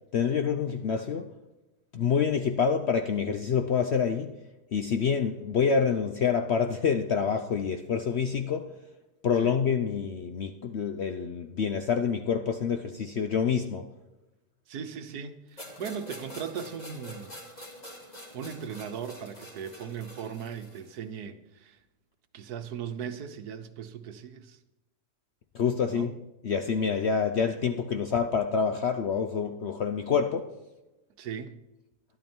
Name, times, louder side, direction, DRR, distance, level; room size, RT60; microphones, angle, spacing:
voice 1, 0.1-1.3 1.9-4.4 4.7-8.7 9.2-13.9 25.5-26.1 26.4-30.5, left 6 dB, 60° left, 0.7 m, -27 dB
voice 2, 14.7-17.3 18.3-21.8 22.3-24.6 25.9-26.1 31.2-31.6, right 7 dB, 70° right, 1.4 m, -38 dB
sound 1, 15.6-20.9, left 1 dB, 25° left, 2.4 m, -46 dB
12.5 x 11.5 x 4.4 m
omnidirectional pair, 1.8 m